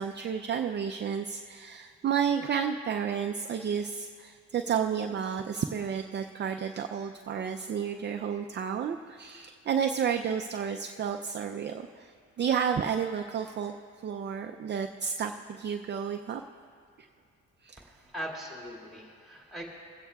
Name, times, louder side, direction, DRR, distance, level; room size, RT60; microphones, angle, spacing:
voice 1, 0.0-13.7 14.0-16.4 17.0-17.1 17.6-17.8, right 7 dB, 35° right, 5 dB, 0.4 m, -31 dB
voice 2, 17.8-19.6, equal, ahead, -3 dB, 2.2 m, -41 dB
23.5 x 8.6 x 2.3 m, 2.2 s
cardioid pair, 90°, 30 cm